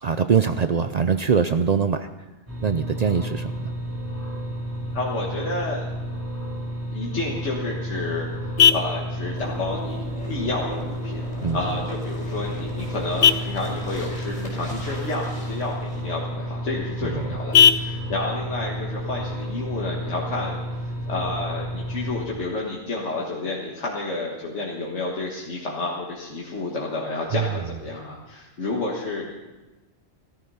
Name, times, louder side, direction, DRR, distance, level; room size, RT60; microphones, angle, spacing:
voice 1, 0.0-2.1 2.6-3.7 11.4-11.6 17.1-17.2 27.3-27.4, right 6 dB, 50° right, 10 dB, 0.5 m, -22 dB
sound 1, 2.5-22.3, equal, 10° right, 2.9 m, -31 dB
voice 2, 4.9-5.8 6.9-8.3 8.7-20.6 21.1-29.3, left 2 dB, 85° left, -3 dB, 1.9 m, -30 dB
Vehicle horn car horn honking, 7.3-20.3, left 8 dB, 65° left, 0.8 m, -26 dB
sound 2, 9.3-16.1, left 1 dB, 35° left, 4.4 m, -39 dB
14.5 x 13.0 x 5.5 m, 1.1 s
omnidirectional pair, 1.2 m